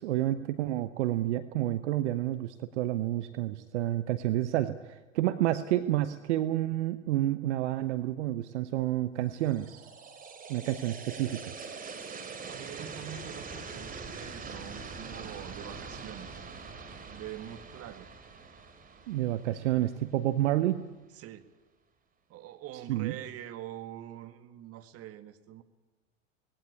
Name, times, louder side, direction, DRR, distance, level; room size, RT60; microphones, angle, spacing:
voice 1, 0.0-9.9 10.5-11.5 19.1-20.8 22.9-23.1, right 14 dB, 60° right, 12 dB, 1.1 m, -29 dB
sound 1, 9.3-20.4, right 4 dB, 20° right, 3.0 m, -44 dB
voice 2, 12.5-16.5 17.0-18.1 21.1-21.5 22.3-25.6, right 12 dB, 40° right, 9 dB, 1.9 m, -44 dB
19.5 x 16.5 x 9.8 m, 1.2 s
figure-of-eight pair, 85°, 38 cm